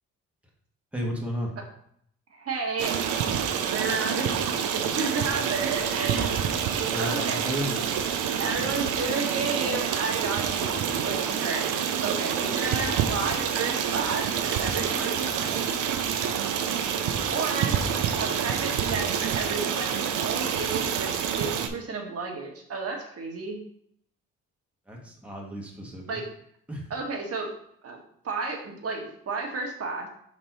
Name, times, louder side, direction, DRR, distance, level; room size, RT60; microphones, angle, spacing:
voice 1, 0.9-1.5 6.9-7.8 24.9-26.2 26.7-26.9, equal, 5° right, -2 dB, 1.5 m, -33 dB
voice 2, 2.3-3.0 3.2-6.5 7.0-7.5 8.4-11.7 12.0-15.6 17.3-17.9 18.2-23.6 26.1-26.3 26.9-27.5 27.8-28.0 28.2-30.1, right 4 dB, 50° right, 1 dB, 1.5 m, -32 dB
Stream, 2.8-21.7, right 8 dB, 85° right, 0.7 m, -27 dB
5.2 x 4.2 x 4.5 m, 0.69 s
cardioid pair, 90°, 30 cm